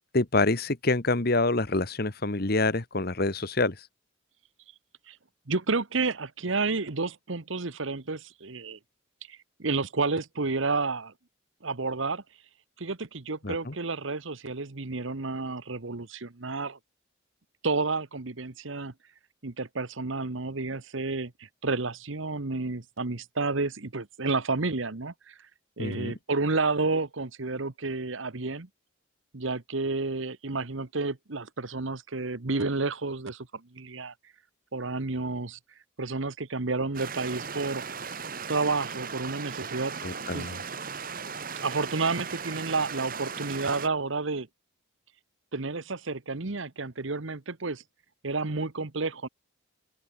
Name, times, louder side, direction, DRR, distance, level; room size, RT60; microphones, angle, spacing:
voice 1, 0.1-3.9 13.4-13.7 25.8-26.1 40.0-40.6, left 2 dB, 50° left, 1.4 m, -26 dB
voice 2, 5.5-8.8 9.3-11.1 11.6-12.2 12.8-16.8 17.6-18.9 19.4-21.3 21.6-25.4 25.8-28.7 29.3-34.1 34.7-35.6 36.0-37.8 38.5-39.9 40.3-40.5 41.6-44.5 45.5-47.8 48.2-49.3, right 3 dB, 70° right, 1.2 m, -30 dB
sound 1, 36.9-43.9, right 6 dB, 45° right, 2.2 m, -37 dB
open air
head